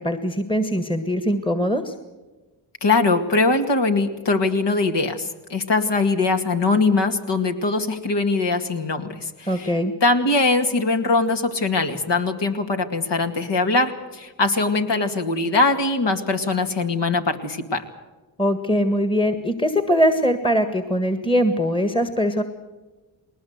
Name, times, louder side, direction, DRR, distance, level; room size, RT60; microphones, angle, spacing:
voice 1, 0.0-1.9 9.5-9.9 18.4-22.4, equal, 10° left, 9 dB, 1.7 m, -21 dB
voice 2, 2.8-9.7 10.0-17.8, left 3 dB, 60° left, 5 dB, 2.3 m, -21 dB
20.5 x 19.0 x 8.1 m, 1.2 s
cardioid pair, 55°, 49 cm